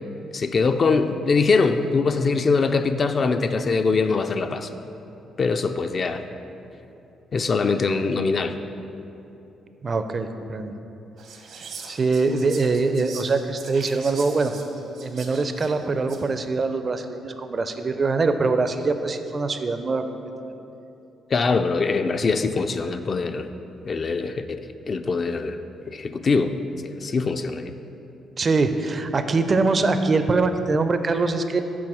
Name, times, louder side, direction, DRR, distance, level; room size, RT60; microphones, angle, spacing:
voice 1, 0.3-4.7 5.4-6.2 7.3-8.6 21.3-23.5 23.8-24.6 24.9-25.6 25.9-26.6 27.0-27.7, left 4 dB, 45° left, 8 dB, 0.3 m, -22 dB
voice 2, 9.8-10.7 11.9-14.5 15.0-20.0 20.4-20.5 28.4-31.6, right 3 dB, 35° right, 9 dB, 0.4 m, -23 dB
Whispering, 11.2-16.3, right 5 dB, 70° right, 0.8 m, -42 dB
6.2 x 4.2 x 6.1 m, 2.9 s
cardioid pair, 90°, 0 cm